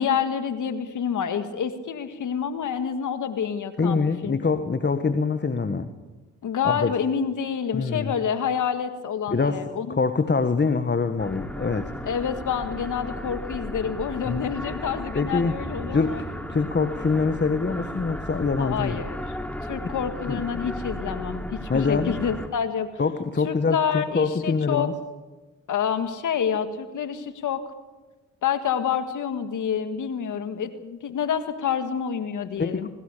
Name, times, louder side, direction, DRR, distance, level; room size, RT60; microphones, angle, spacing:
voice 1, 0.0-4.4 6.4-10.0 12.0-16.2 18.6-19.2 19.6-22.9 23.4-24.9 25.7-27.6 28.4-32.9, left 7 dB, 75° left, 9 dB, 1.9 m, -28 dB
voice 2, 3.8-5.9 6.6-6.9 7.7-8.1 9.3-9.6 10.0-11.9 14.3-14.5 15.1-15.5 15.9-19.0 20.3-20.4 21.7-22.2 23.0-24.9 32.6-32.9, left 4 dB, 35° left, 9 dB, 1.6 m, -24 dB
sound 1, 11.2-22.5, equal, 5° left, 3.2 m, -35 dB
22.0 x 19.0 x 6.9 m, 1.2 s
supercardioid pair, 50°, 31 cm